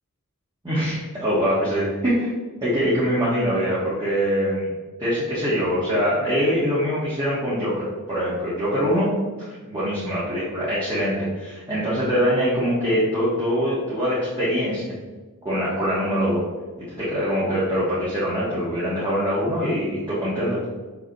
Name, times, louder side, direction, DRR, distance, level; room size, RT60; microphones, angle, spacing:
voice 1, 0.6-2.3 2.6-4.7 5.0-9.2 9.7-15.0 15.4-16.4 16.9-20.6, equal, 20° right, -9 dB, 1.5 m, -23 dB
6.0 x 5.9 x 3.0 m, 1.3 s
head